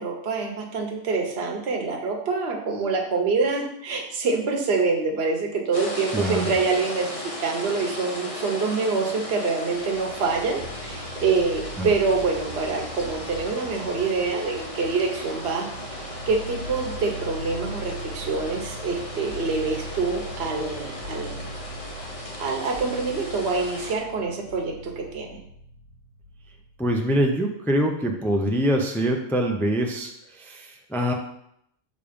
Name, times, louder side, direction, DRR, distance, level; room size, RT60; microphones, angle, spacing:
voice 1, 0.0-21.5 22.4-25.4, right 4 dB, 55° right, 1 dB, 1.2 m, -26 dB
sound 1, 5.7-23.9, left 1 dB, 30° left, 1.0 m, -37 dB
voice 2, 6.1-6.4 11.8-11.9 26.8-30.1 30.4-31.1, equal, 5° left, 2 dB, 0.4 m, -24 dB
sound 2, 9.7-27.0, equal, 80° right, 1.4 m, -40 dB
6.7 x 3.6 x 5.1 m, 0.74 s
omnidirectional pair, 1.4 m